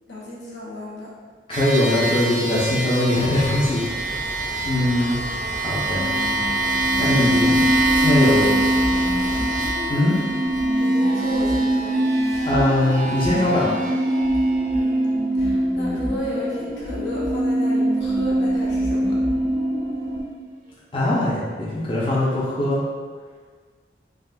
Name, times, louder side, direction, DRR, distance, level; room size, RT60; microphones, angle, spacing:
voice 1, 0.1-1.1 5.0-5.6 7.3-7.8 8.1-8.6 9.0-9.1 10.8-12.0 14.7-14.9 15.3-19.2, left 1 dB, 75° left, -6 dB, 0.8 m, -33 dB
voice 2, 1.5-3.8 4.6-5.2 5.6-6.0 7.0-7.6 8.0-8.5 9.9-10.1 12.5-13.6 20.9-22.8, left 1 dB, 30° left, -8 dB, 0.5 m, -21 dB
sound 1, 1.5-15.1, right 2 dB, 45° right, 0.4 m, -27 dB
sound 2, 3.1-9.6, equal, 55° left, 1.0 m, -35 dB
sound 3, 5.9-20.2, right 1 dB, 70° right, 0.7 m, -23 dB
3.5 x 2.5 x 2.3 m, 1.6 s
head